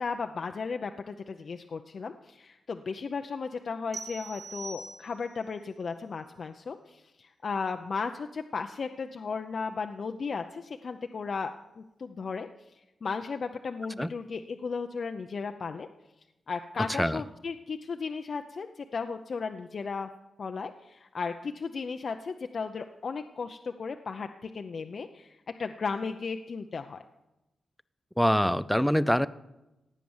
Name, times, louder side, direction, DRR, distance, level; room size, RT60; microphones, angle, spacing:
voice 1, 0.0-12.5 13.0-15.9 16.5-20.1 20.4-27.0, left 5 dB, 50° left, 6 dB, 0.6 m, -35 dB
sound 1, 3.9-5.5, right 3 dB, 55° right, 3.1 m, -42 dB
voice 2, 28.2-29.3, equal, ahead, 16 dB, 0.4 m, -24 dB
16.5 x 9.2 x 7.1 m, 0.98 s
wide cardioid pair, 145°, 0 cm